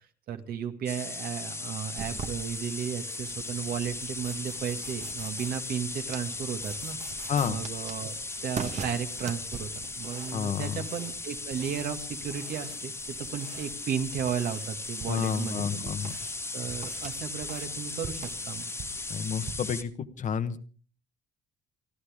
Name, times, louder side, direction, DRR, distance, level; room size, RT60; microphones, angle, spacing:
voice 1, 0.3-8.1 8.4-9.7 9.9-15.8 16.1-16.2 16.5-18.7, right 8 dB, 60° right, 7 dB, 2.0 m, -34 dB
sound 1, 0.9-19.8, left 3 dB, 15° left, 1.5 m, -37 dB
sound 2, 2.0-19.5, right 6 dB, 45° right, 1.4 m, -44 dB
voice 2, 7.3-7.6 10.3-10.8 15.1-16.1 19.1-20.6, left 7 dB, 45° left, 10 dB, 1.3 m, -30 dB
29.0 x 12.0 x 3.6 m, 0.40 s
cardioid pair, 110°, 17 cm